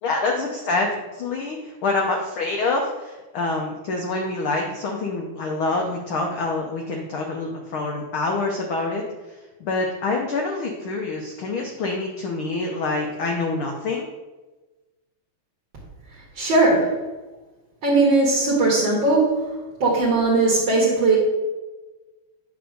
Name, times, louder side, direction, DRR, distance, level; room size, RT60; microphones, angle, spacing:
voice 1, 0.0-9.0 9.6-14.1, left 3 dB, 80° left, 1 dB, 1.1 m, -26 dB
voice 2, 16.4-17.0 17.8-19.4 19.8-21.2, right 3 dB, 45° right, -5 dB, 2.1 m, -19 dB
9.1 x 3.4 x 6.4 m, 1.2 s
omnidirectional pair, 3.4 m